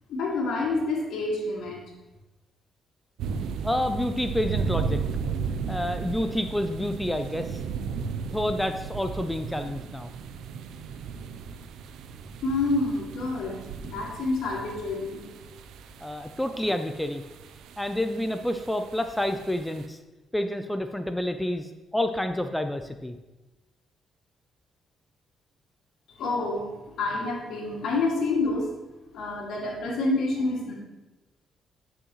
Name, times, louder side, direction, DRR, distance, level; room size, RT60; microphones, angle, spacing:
voice 1, 0.1-1.8 12.4-15.2 26.2-26.7 27.0-28.7 29.1-30.7, left 3 dB, 75° left, -1 dB, 2.2 m, -28 dB
sound 1, 3.2-19.9, right 5 dB, 85° right, 0.5 m, -35 dB
voice 2, 3.6-5.0 5.7-7.6 8.3-10.1 16.0-17.2 17.8-20.0 20.3-23.1, left 1 dB, 5° left, 7 dB, 0.5 m, -29 dB
10.5 x 6.3 x 3.1 m, 1.1 s
cardioid pair, 90°, 0 cm